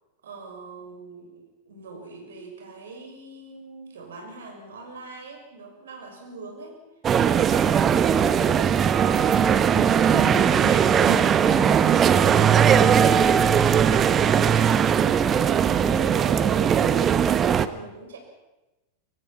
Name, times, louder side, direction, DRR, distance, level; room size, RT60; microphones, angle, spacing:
voice 1, 0.2-6.8 15.8-18.2, right 3 dB, 65° right, 3 dB, 6.5 m, -42 dB
sound 1, 7.0-17.7, right 8 dB, 25° right, 1.1 m, -19 dB
voice 2, 9.7-11.8, left 4 dB, 75° left, 1 dB, 6.9 m, -36 dB
25.0 x 24.0 x 5.9 m, 1.0 s
figure-of-eight pair, 90°, 0 cm